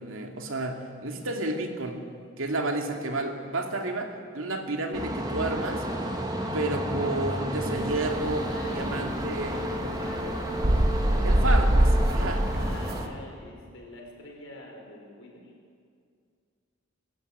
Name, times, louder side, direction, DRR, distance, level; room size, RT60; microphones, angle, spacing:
voice 1, 0.0-2.0 2.4-5.8 6.5-9.6 11.2-12.4, right 2 dB, 85° right, 3 dB, 2.5 m, -31 dB
sound 1, 4.9-13.1, equal, 20° right, 2.3 m, -32 dB
sound 2, 7.8-13.1, right 1 dB, 50° right, 1.3 m, -25 dB
voice 2, 8.5-10.6 12.4-15.5, left 1 dB, 75° left, 0 dB, 5.3 m, -44 dB
24.0 x 12.5 x 9.5 m, 2.2 s
head